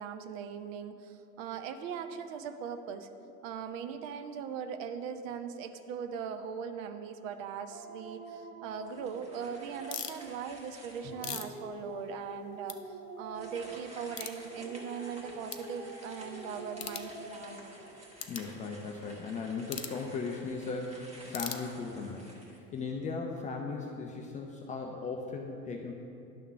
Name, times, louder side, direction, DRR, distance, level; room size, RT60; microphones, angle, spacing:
voice 1, 0.0-3.1 3.4-12.8 13.2-17.6, right 7 dB, 55° right, 8 dB, 0.7 m, -40 dB
Dog, 7.7-10.5 11.0-14.1 14.5-18.0, right 2 dB, 75° right, 1.8 m, -46 dB
sound 1, 8.8-11.4 11.9-12.0 13.3-23.1, right 1 dB, 15° right, 1.6 m, -52 dB
sound 2, 9.9-10.2 10.9-12.4 12.6-12.8 13.2-13.3 14.1-14.4 15.0-15.1 15.5-15.7 16.7-17.1 18.2-18.5 19.7-20.0 21.3-22.1, left 8 dB, 90° left, 0.6 m, -40 dB
voice 2, 11.0-11.4 18.3-22.3 22.7-25.9, left 4 dB, 20° left, 1 dB, 0.3 m, -37 dB
11.0 x 3.7 x 5.5 m, 2.8 s
figure-of-eight pair, 80°, 46 cm